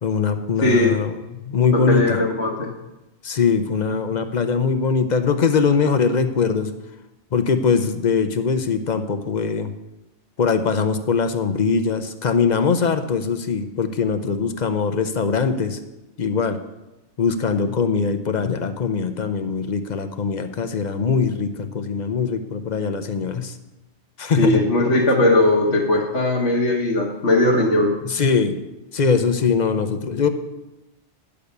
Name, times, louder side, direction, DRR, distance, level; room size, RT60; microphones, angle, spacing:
voice 1, 0.0-1.1 1.4-2.2 3.2-6.7 7.3-9.7 10.4-15.8 16.2-16.6 17.2-23.5 24.2-24.6 28.1-28.5 28.9-30.3, left 5 dB, 45° left, 9 dB, 0.8 m, -21 dB
voice 2, 0.6-0.9 1.7-2.7 24.4-27.9, left 1 dB, 65° left, -2 dB, 1.6 m, -18 dB
10.0 x 6.9 x 6.7 m, 0.99 s
omnidirectional pair, 1.2 m